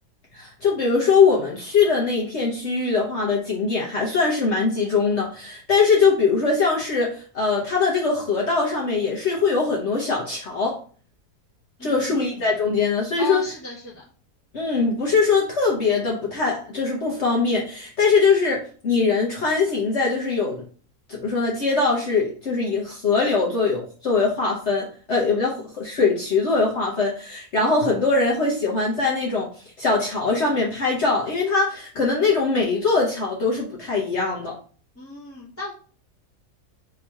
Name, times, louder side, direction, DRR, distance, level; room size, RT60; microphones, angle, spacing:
voice 1, 0.3-10.8 11.8-13.4 14.5-20.6 21.1-29.5 29.8-34.6, left 4 dB, 50° left, -3 dB, 1.1 m, -22 dB
voice 2, 11.8-12.3 13.2-14.0 35.0-35.7, left 4 dB, 10° left, -9 dB, 1.0 m, -35 dB
3.6 x 2.8 x 4.6 m, 0.42 s
omnidirectional pair, 1.7 m